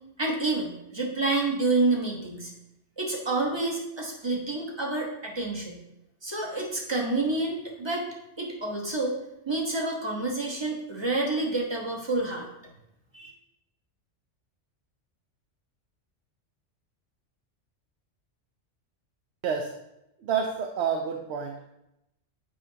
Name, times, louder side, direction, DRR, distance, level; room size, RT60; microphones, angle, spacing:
voice 1, 0.2-2.5 3.0-5.8 6.2-8.0 8.4-9.1 9.5-12.5 13.1-13.3, right 2 dB, 25° right, -1 dB, 1.0 m, -28 dB
voice 2, 20.2-21.6, right 7 dB, 70° right, 3 dB, 0.8 m, -28 dB
7.6 x 5.0 x 2.7 m, 0.86 s
omnidirectional pair, 1.3 m